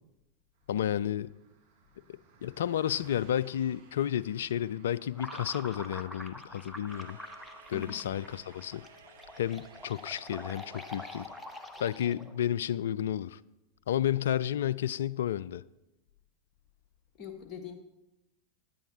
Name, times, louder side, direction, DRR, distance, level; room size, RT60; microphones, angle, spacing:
Car passing by, 0.5-10.1, right 3 dB, 50° right, 2.1 m, -61 dB
voice 1, 0.7-1.3 2.1-7.2 7.7-8.9 9.4-11.3 11.8-13.4 13.9-15.6, left 10 dB, 60° left, 0.3 m, -31 dB
sound 1, 5.1-12.4, left 1 dB, 5° left, 0.9 m, -45 dB
sound 2, 6.9-11.9, right 3 dB, 65° right, 1.0 m, -56 dB
voice 2, 7.7-8.1 17.1-17.7, left 7 dB, 30° left, 1.7 m, -43 dB
15.5 x 10.5 x 3.0 m
figure-of-eight pair, 90°, 0 cm